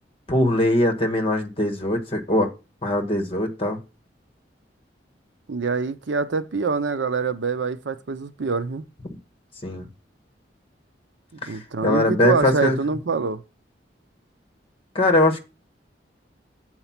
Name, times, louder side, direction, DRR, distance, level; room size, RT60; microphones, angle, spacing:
voice 1, 0.3-2.5 2.8-3.8 9.6-9.9 11.4-12.8 14.9-15.4, left 1 dB, 30° left, 1.4 m, -21 dB
voice 2, 5.5-8.8 11.5-13.4, right 4 dB, 85° right, 0.6 m, -25 dB
7.9 x 4.6 x 5.8 m
head